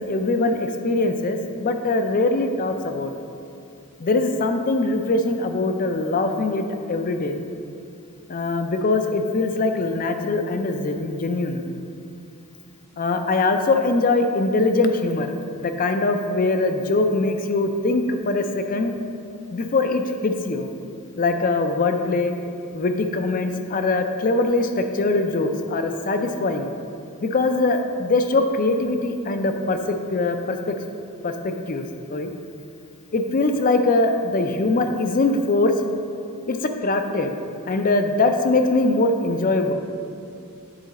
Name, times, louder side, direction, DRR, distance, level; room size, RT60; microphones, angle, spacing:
voice 1, 0.1-3.1 4.0-7.4 8.3-11.6 13.0-18.9 19.5-20.7 21.2-22.3 22.7-26.7 27.2-30.7 31.2-31.8 32.1-32.3 33.1-35.7 36.5-37.3 37.7-39.7, left 2 dB, 40° left, 6 dB, 0.4 m, -22 dB
8.9 x 4.0 x 4.1 m, 2.5 s
head